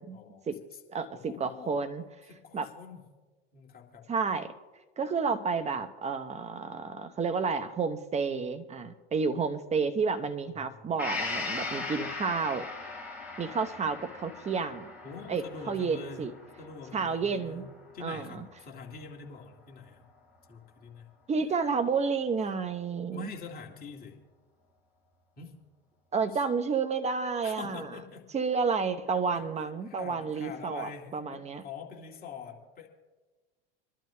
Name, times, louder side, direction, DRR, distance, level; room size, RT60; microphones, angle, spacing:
voice 1, 0.1-0.8 1.1-1.7 2.3-3.0 3.5-4.1 10.6-10.9 15.0-16.2 16.6-20.0 20.5-21.1 23.1-24.2 25.4-25.5 26.3-26.4 27.4-28.3 29.1-29.4 29.9-32.9, left 5 dB, 30° left, 0 dB, 2.2 m, -45 dB
voice 2, 0.9-2.0 2.5-2.7 4.1-4.5 5.0-12.6 13.4-14.9 15.3-16.3 16.9-17.6 18.0-18.4 21.3-23.3 26.1-28.0 28.3-31.6, right 5 dB, 20° right, 9 dB, 0.9 m, -30 dB
Gong, 11.0-18.6 19.0-19.1, left 3 dB, 5° right, 4.5 m, -39 dB
28.0 x 12.0 x 2.2 m, 1.3 s
hypercardioid pair, 85°, 31 cm